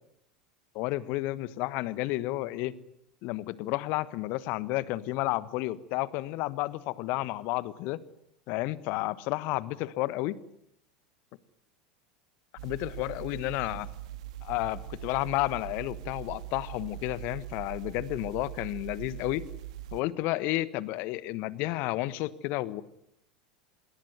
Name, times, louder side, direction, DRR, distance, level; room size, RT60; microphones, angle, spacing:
voice 1, 0.7-2.7 3.2-8.0 8.5-10.3 12.6-13.9 14.4-19.4 19.9-22.8, left 18 dB, 50° left, 18 dB, 1.4 m, -31 dB
sound 1, 12.6-20.0, right 13 dB, 60° right, 1.9 m, -42 dB
26.5 x 22.0 x 9.3 m, 0.75 s
figure-of-eight pair, 80°, 4 cm